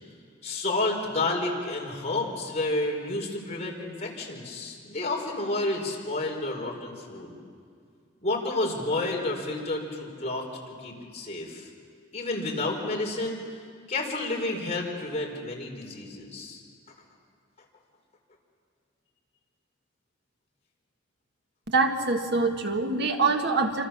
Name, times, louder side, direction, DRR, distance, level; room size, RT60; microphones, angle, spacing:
voice 1, 0.4-7.3 8.2-11.7 12.1-13.5 13.9-16.6, left 2 dB, 35° left, -1 dB, 5.1 m, -30 dB
voice 2, 21.7-23.9, right 3 dB, 60° right, 4 dB, 1.8 m, -25 dB
27.5 x 26.5 x 7.4 m, 2.2 s
head